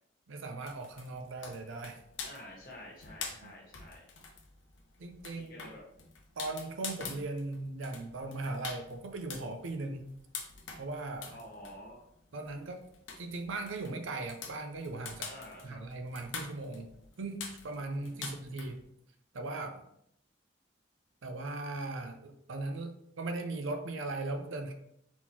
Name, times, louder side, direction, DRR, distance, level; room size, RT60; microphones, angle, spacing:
voice 1, 0.3-2.0 3.4-3.5 5.0-5.7 6.4-10.1 10.8-11.4 12.3-12.8 13.2-15.3 15.6-16.9 17.2-18.8 19.3-19.8 21.2-24.7, right 2 dB, 85° right, 6 dB, 0.6 m, -38 dB
sound 1, 0.6-18.8, left 5 dB, 75° left, 0.7 m, -46 dB
voice 2, 2.2-4.1 5.3-5.8 11.3-12.1 15.3-15.8 17.9-18.4, left 1 dB, 50° left, -2 dB, 1.4 m, -49 dB
4.0 x 4.0 x 2.9 m, 0.74 s
head